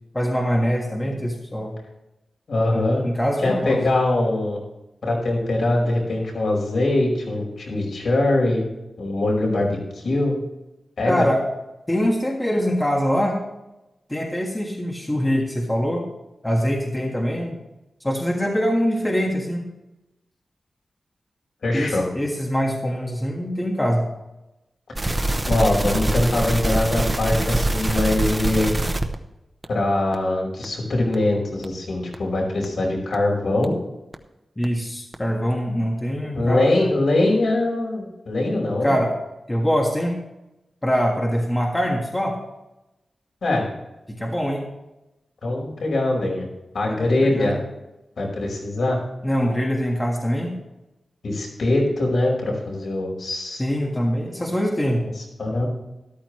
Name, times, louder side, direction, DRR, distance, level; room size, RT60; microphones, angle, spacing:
voice 1, 0.1-1.8 2.7-3.8 11.1-11.4 11.9-13.4 14.1-16.0 16.4-17.5 18.0-19.7 21.7-24.0 34.6-36.9 38.8-39.1 39.5-40.2 40.8-42.4 44.1-44.6 46.8-47.5 49.2-50.5 53.6-55.1, equal, 10° left, -1 dB, 1.7 m, -23 dB
voice 2, 2.5-3.0 3.4-4.6 5.0-8.6 9.0-10.4 11.0-11.2 21.6-22.1 25.0-28.7 29.7-33.7 36.3-38.9 43.4-43.6 45.4-46.5 46.7-47.6 48.2-49.0 51.2-53.6 55.1-55.7, left 2 dB, 65° left, -2 dB, 5.0 m, -22 dB
sound 1, 24.9-29.1 29.6-29.7 30.1-30.2 30.6-30.7 31.1-31.2 31.6-31.7 32.1-32.2 32.6-32.7 33.1-33.2 33.6-33.7 34.1-34.2 34.6-34.7 35.1-35.2, right 2 dB, 15° right, 0.9 m, -23 dB
13.5 x 13.0 x 3.2 m, 0.97 s
wide cardioid pair, 165°, 0 cm